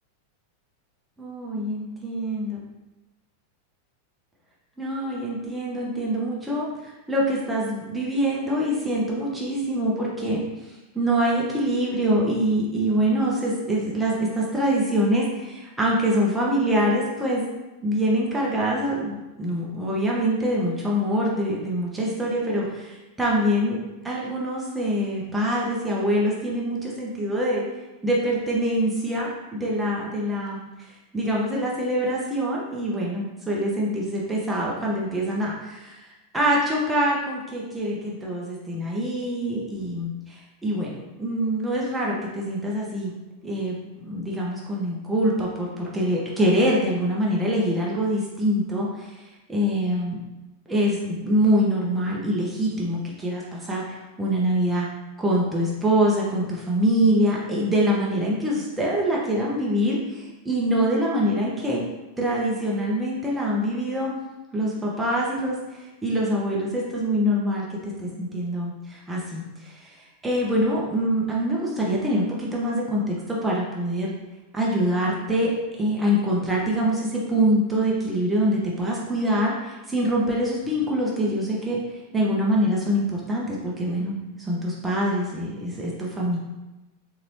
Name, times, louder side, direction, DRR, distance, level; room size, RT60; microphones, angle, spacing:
voice 1, 1.2-2.6 4.8-17.4 17.8-23.8 24.0-27.6 28.0-43.1 43.4-50.2 50.7-54.9 55.2-61.8 62.2-64.1 64.5-74.1 74.5-75.5 75.8-81.8 82.1-84.1 84.4-86.4, equal, 10° right, -5 dB, 0.7 m, -25 dB
3.9 x 2.8 x 3.1 m, 1.1 s
figure-of-eight pair, 90°, 0 cm